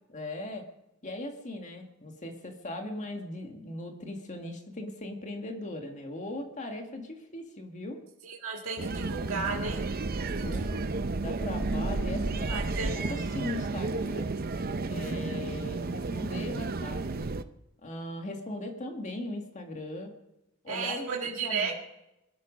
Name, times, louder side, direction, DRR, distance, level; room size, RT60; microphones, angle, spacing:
voice 1, 0.1-0.6 1.0-8.0 10.4-10.7 11.2-12.6 12.9-14.3 14.9-17.3 17.8-20.1 20.6-21.7, left 1 dB, 35° left, 3 dB, 1.9 m, -39 dB
voice 2, 8.2-9.8 10.2-10.7 12.5-12.9 20.7-21.7, right 5 dB, 80° right, -1 dB, 1.9 m, -34 dB
sound 1, 8.8-17.4, right 3 dB, 45° right, 0.6 m, -32 dB
22.0 x 12.5 x 5.2 m, 0.91 s
head